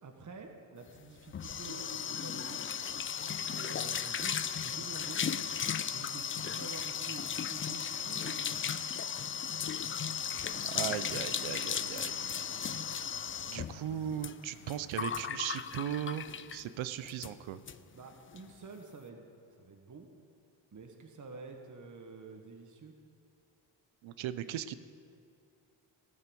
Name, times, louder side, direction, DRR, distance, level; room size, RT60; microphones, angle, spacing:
voice 1, 0.0-2.6 3.2-5.4 5.9-8.8 17.9-19.2 19.6-20.1 20.7-23.0, right 4 dB, 35° right, 3 dB, 1.3 m, -49 dB
sound 1, 1.0-16.7 17.1-17.3 17.7-17.8 18.1-18.4, left 8 dB, 30° left, 0.4 m, -36 dB
voice 2, 10.7-12.9 13.5-17.6 24.0-24.8, right 10 dB, 70° right, 13 dB, 0.7 m, -38 dB
15.0 x 5.5 x 6.9 m, 2.4 s
cardioid pair, 65°, 48 cm